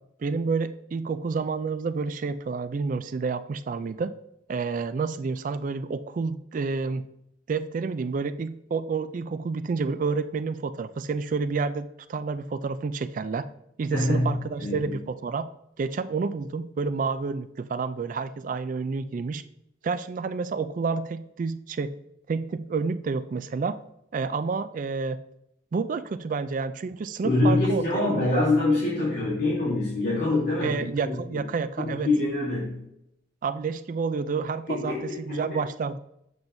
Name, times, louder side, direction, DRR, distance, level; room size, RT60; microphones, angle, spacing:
voice 1, 0.2-4.1 4.5-7.0 7.5-13.5 13.8-15.5 15.8-19.4 19.8-21.9 22.3-23.8 24.1-25.2 25.7-28.4 30.6-32.1 33.4-36.0, right 4 dB, 45° right, 12 dB, 0.3 m, -29 dB
voice 2, 13.9-14.3 14.6-14.9 27.2-31.4 31.8-32.8 34.7-35.6, left 2 dB, 55° left, -8 dB, 2.9 m, -25 dB
7.8 x 7.1 x 2.6 m, 0.77 s
head